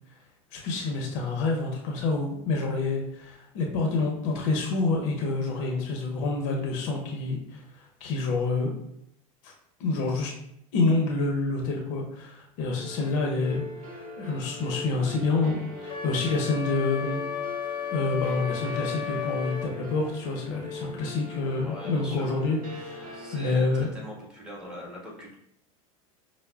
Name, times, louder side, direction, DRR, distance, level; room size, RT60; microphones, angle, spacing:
voice 1, 0.5-8.7 9.4-9.5 9.8-10.3 10.7-13.6 13.9-17.2 17.9-23.9, left 3 dB, 65° left, 1 dB, 0.7 m, -28 dB
sound 1, 12.8-23.6, left 2 dB, 45° right, 1.2 m, -41 dB
Wind instrument woodwind instrument, 15.9-19.7, left 8 dB, 25° left, 0.5 m, -33 dB
voice 2, 21.6-22.3 23.1-25.3, equal, 5° right, -5 dB, 1.4 m, -41 dB
5.5 x 2.1 x 2.3 m, 0.75 s
hypercardioid pair, 95°, 18 cm